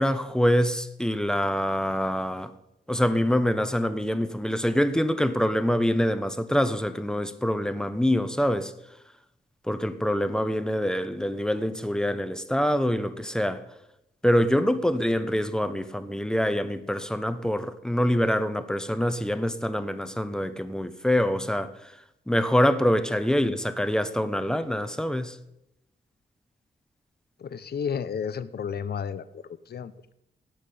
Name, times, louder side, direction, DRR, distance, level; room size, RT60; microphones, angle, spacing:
voice 1, 0.0-2.5 2.9-8.7 9.7-13.6 14.2-22.0 22.3-25.4, equal, 5° left, 1.0 m, -25 dB
voice 2, 27.4-30.1, left 7 dB, 60° left, 0.9 m, -32 dB
18.0 x 6.0 x 8.6 m
wide cardioid pair, 105°, 18 cm